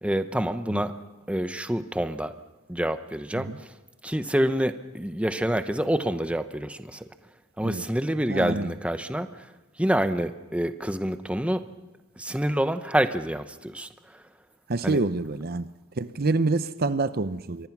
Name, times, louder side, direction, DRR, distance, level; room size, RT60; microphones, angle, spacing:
voice 1, 0.0-0.9 1.3-2.3 2.7-3.7 4.0-7.1 7.6-9.5 9.8-11.6 12.2-14.2 14.8-15.0, right 1 dB, 5° right, 9 dB, 0.8 m, -27 dB
voice 2, 8.3-8.7 14.7-15.7 16.0-17.7, right 3 dB, 45° right, 13 dB, 0.7 m, -27 dB
28.0 x 24.0 x 6.0 m, 1.1 s
head